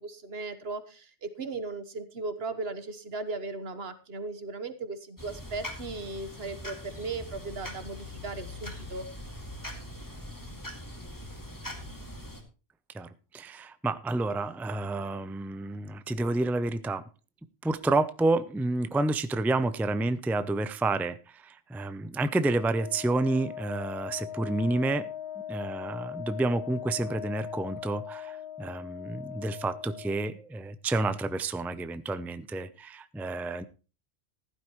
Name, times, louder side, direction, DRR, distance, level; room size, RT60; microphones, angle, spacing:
voice 1, 0.0-9.1, right 3 dB, 70° right, 11 dB, 1.5 m, -37 dB
sound 1, 5.2-12.4, left 1 dB, 20° left, 2.3 m, -42 dB
voice 2, 12.9-17.0 17.6-25.1 25.5-33.6, right 2 dB, ahead, 13 dB, 0.4 m, -29 dB
Wind instrument woodwind instrument, 22.5-30.3, left 10 dB, 80° left, 1.2 m, -40 dB
14.5 x 12.0 x 3.1 m, 0.33 s
omnidirectional pair, 1.1 m